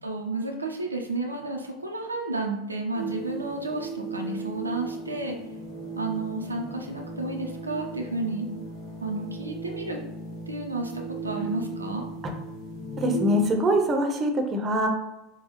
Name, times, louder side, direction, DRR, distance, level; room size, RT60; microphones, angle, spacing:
voice 1, 0.0-5.4 6.0-8.5 9.0-10.0 10.5-12.0, right 2 dB, 85° right, 2 dB, 0.6 m, -31 dB
sound 1, 2.9-13.4, right 3 dB, 50° left, 1.4 m, -37 dB
voice 2, 13.0-14.9, equal, 25° right, 3 dB, 0.8 m, -23 dB
4.5 x 2.3 x 4.2 m, 0.95 s
figure-of-eight pair, 80°, 0 cm